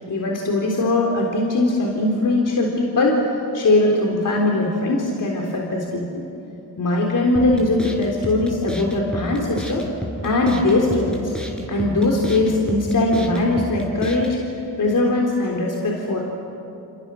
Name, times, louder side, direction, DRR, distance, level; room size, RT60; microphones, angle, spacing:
voice 1, 0.1-3.2 3.5-6.2 6.8-9.9 10.2-11.3 11.7-14.4 14.8-16.2, left 2 dB, 50° left, 0 dB, 3.7 m, -20 dB
sound 1, 7.4-14.4, equal, ahead, 5.5 m, -31 dB
28.5 x 28.0 x 6.4 m, 2.9 s
supercardioid pair, 65°, 39 cm